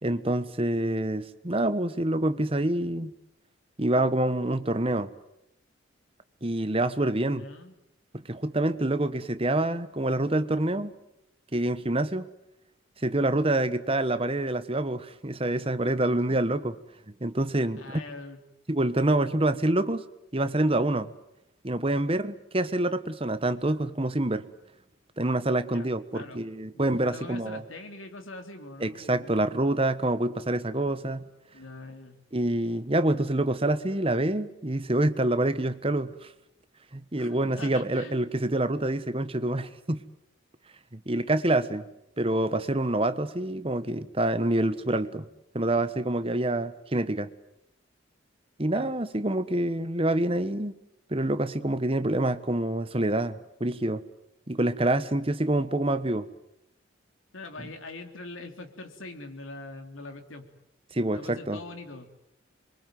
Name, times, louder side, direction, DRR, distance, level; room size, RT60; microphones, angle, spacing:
voice 1, 0.0-3.1 3.8-5.1 6.4-7.5 8.1-10.9 11.5-12.3 13.0-16.7 17.2-18.0 18.7-20.0 20.3-21.1 21.6-24.5 25.2-27.6 28.8-31.3 32.3-36.3 36.9-40.0 40.9-41.8 42.2-45.3 45.5-47.3 48.6-50.7 51.1-54.0 54.5-56.3 57.6-57.7 60.9-61.6, right 1 dB, 30° right, 12 dB, 1.2 m, -26 dB
voice 2, 7.2-7.7 16.3-16.4 17.7-18.4 25.7-26.4 26.7-29.5 31.5-32.2 37.2-38.2 48.7-48.9 57.3-60.5 61.1-62.1, left 2 dB, 85° left, 5 dB, 3.5 m, -43 dB
27.0 x 23.5 x 9.3 m, 0.82 s
head